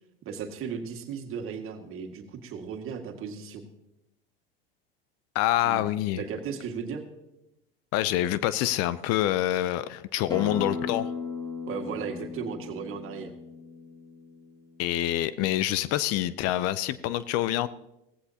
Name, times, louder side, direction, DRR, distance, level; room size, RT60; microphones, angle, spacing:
voice 1, 0.2-3.7 5.6-5.8 6.2-7.0 11.7-13.3, right 6 dB, 45° right, 5 dB, 2.0 m, -36 dB
voice 2, 5.3-6.2 7.9-11.1 14.8-17.7, left 13 dB, 55° left, 17 dB, 0.6 m, -26 dB
Acoustic guitar, 10.3-15.5, left 4 dB, 15° left, 1.9 m, -38 dB
17.0 x 15.5 x 2.9 m, 0.91 s
hypercardioid pair, 85°, 29 cm